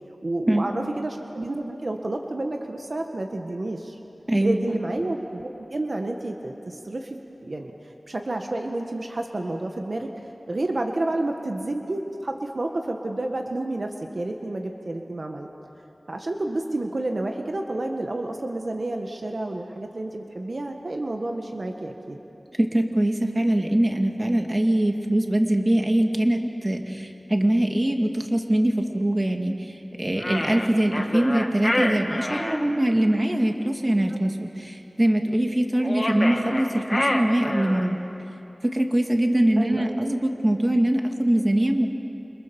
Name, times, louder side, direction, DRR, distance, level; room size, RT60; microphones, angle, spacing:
voice 1, 0.2-4.0 4.4-7.7 8.1-10.1 10.5-15.5 16.1-22.2 35.8-35.9 39.6-40.1, right 2 dB, 65° right, 3 dB, 1.6 m, -30 dB
voice 2, 4.3-4.8 22.6-38.0 38.6-41.9, right 1 dB, 30° right, 3 dB, 2.4 m, -23 dB
sound 1, 30.2-32.6 35.8-38.0, left 1 dB, 30° left, 2.2 m, -27 dB
28.0 x 27.0 x 7.1 m, 2.9 s
wide cardioid pair, 45°, 0 cm